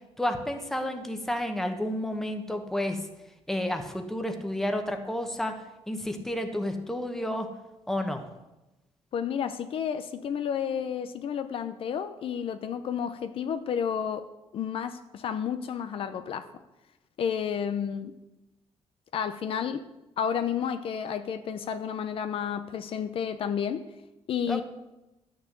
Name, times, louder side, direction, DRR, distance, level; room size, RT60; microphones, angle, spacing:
voice 1, 0.2-3.0 3.5-5.5 5.9-7.5 7.9-8.2 24.5-24.6, left 1 dB, 5° left, 5 dB, 1.2 m, -30 dB
voice 2, 9.1-14.3 14.5-16.5 17.2-18.1 19.1-19.8 20.2-23.8 24.3-24.6, left 8 dB, 55° left, 10 dB, 0.7 m, -31 dB
12.5 x 6.3 x 8.2 m, 0.99 s
cardioid pair, 150°, 11 cm